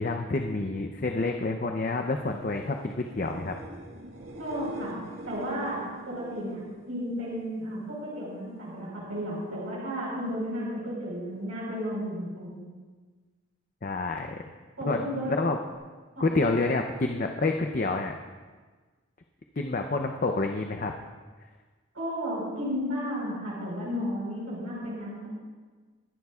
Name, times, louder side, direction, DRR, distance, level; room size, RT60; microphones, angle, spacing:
voice 1, 0.0-3.6 13.8-14.4 14.9-15.6 16.2-18.1 19.6-20.9, left 3 dB, 40° left, 4 dB, 0.6 m, -28 dB
sound 1, 2.0-7.8 8.1-8.7 15.7-15.8, right 1 dB, 70° right, 1.6 m, -44 dB
voice 2, 4.4-4.9 5.2-5.8 6.1-6.6 6.9-12.6 14.8-15.3 16.1-16.3 21.9-25.3, equal, 90° right, -6 dB, 4.4 m, -33 dB
22.5 x 11.0 x 2.4 m, 1.4 s
head